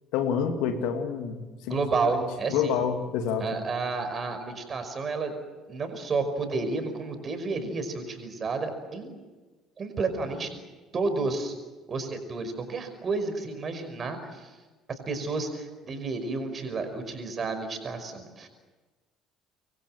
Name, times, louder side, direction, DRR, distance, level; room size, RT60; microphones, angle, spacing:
voice 1, 0.1-2.2 2.5-3.6, left 7 dB, 60° left, 6 dB, 2.5 m, -28 dB
voice 2, 1.6-2.8 3.4-5.4 5.7-9.1 9.8-10.5 10.9-11.5 11.9-14.5 14.9-18.5, right 3 dB, 35° right, 8 dB, 5.5 m, -31 dB
26.5 x 23.0 x 7.7 m, 1.3 s
figure-of-eight pair, 55°, 0 cm